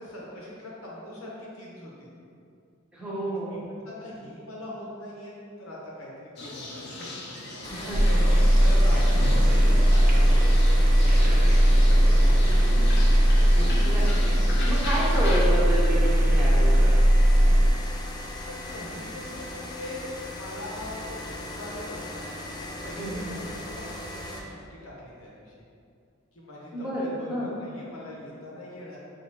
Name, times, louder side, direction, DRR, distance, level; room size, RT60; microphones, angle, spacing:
voice 1, 0.0-2.1 3.2-7.4 7.8-13.3 18.4-22.3 22.7-25.5 26.3-29.0, left 1 dB, 75° left, -5 dB, 1.0 m, -41 dB
voice 2, 2.9-3.6 7.7-8.2 13.8-14.4 14.7-16.8 22.9-23.3 26.7-27.6, right 1 dB, 5° right, -8 dB, 0.9 m, -30 dB
sound 1, 6.4-15.5, left 1 dB, 55° left, 0.7 m, -37 dB
sound 2, 7.6-24.4, left 1 dB, 20° left, 0.3 m, -38 dB
sound 3, 7.9-17.7, equal, 40° right, 0.4 m, -19 dB
5.8 x 2.7 x 2.9 m, 2.4 s
head